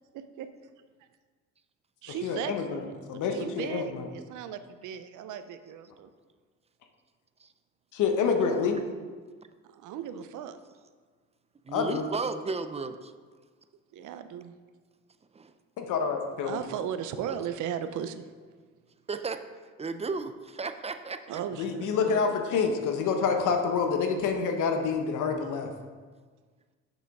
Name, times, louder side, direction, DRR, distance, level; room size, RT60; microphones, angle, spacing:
voice 1, 0.1-0.5 2.0-6.1 9.7-10.6 13.9-14.5 16.4-18.2 21.3-22.4, right 9 dB, 85° right, 11 dB, 0.6 m, -37 dB
voice 2, 2.1-2.8 3.1-4.1 7.9-8.8 11.7-12.0 15.8-16.6 21.6-25.7, left 5 dB, 80° left, 5 dB, 0.9 m, -27 dB
voice 3, 11.7-13.1 15.3-15.5 17.3-17.4 19.1-19.4 19.8-21.4, right 4 dB, 20° right, 9 dB, 0.4 m, -34 dB
7.1 x 6.2 x 3.6 m, 1.5 s
cardioid pair, 90°, 30 cm